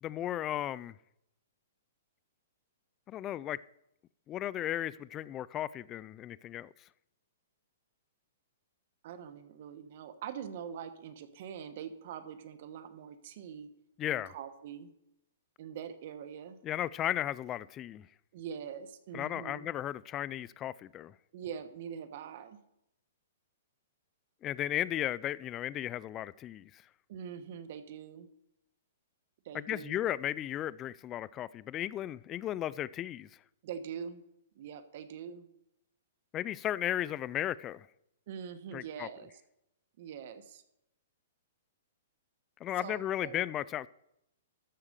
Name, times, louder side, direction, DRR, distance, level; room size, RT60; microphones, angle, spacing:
voice 1, 0.0-0.9 3.1-3.6 4.3-6.7 14.0-14.3 16.6-18.1 19.1-21.1 24.4-26.8 29.5-33.3 36.3-37.9 38.7-39.1 42.6-43.9, left 12 dB, 20° left, 0.3 m, -35 dB
voice 2, 9.0-13.7 14.1-14.9 15.6-16.6 18.3-19.7 21.3-22.6 27.1-28.3 29.4-30.0 33.6-34.2 34.5-35.5 38.3-39.3 40.0-40.6 42.8-43.5, right 8 dB, 50° right, 1.1 m, -43 dB
13.5 x 4.8 x 6.7 m
hypercardioid pair, 155°, 0 cm